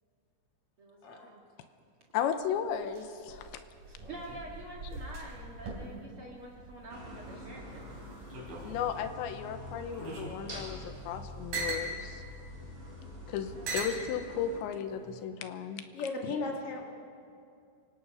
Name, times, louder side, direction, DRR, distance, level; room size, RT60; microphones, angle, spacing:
voice 1, 0.8-1.4 3.9-7.9 13.5-13.9, right 2 dB, 65° right, -3 dB, 1.3 m, -47 dB
voice 2, 2.1-3.6 8.6-12.2 13.3-15.9, left 8 dB, 75° left, 9 dB, 2.9 m, -35 dB
sound 1, 2.4-7.5 7.8-9.1 9.7-11.9 12.8-12.9 13.7-14.0 14.9-15.3, right 2 dB, 50° right, 5.1 m, -41 dB
sound 2, 6.9-14.6, left 1 dB, 15° right, 4.8 m, -45 dB
voice 3, 15.9-16.8, left 3 dB, 55° left, 0 dB, 1.5 m, -35 dB
27.0 x 17.5 x 5.5 m, 2.5 s
omnidirectional pair, 5.7 m